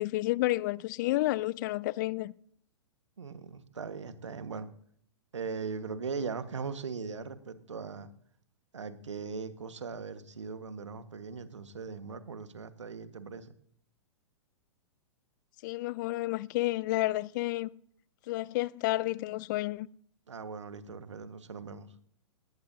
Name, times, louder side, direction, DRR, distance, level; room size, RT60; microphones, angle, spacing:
voice 1, 0.0-2.3 15.6-17.7 18.3-19.9, left 18 dB, 40° left, 0.4 m, -30 dB
voice 2, 3.2-4.7 5.3-8.1 8.7-13.5 20.3-21.9, right 5 dB, 75° right, 1.5 m, -39 dB
18.5 x 18.0 x 2.8 m
figure-of-eight pair, 110°, 15 cm